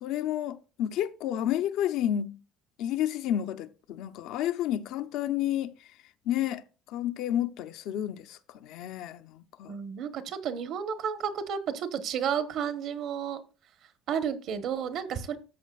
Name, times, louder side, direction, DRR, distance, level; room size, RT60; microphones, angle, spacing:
voice 1, 0.0-2.4 2.8-5.7 6.3-6.6 6.9-9.8, left 11 dB, 75° left, 0.6 m, -30 dB
voice 2, 9.7-13.4 14.1-15.4, right 7 dB, 55° right, 1.1 m, -32 dB
13.5 x 7.4 x 2.4 m
cardioid pair, 155°, 0 cm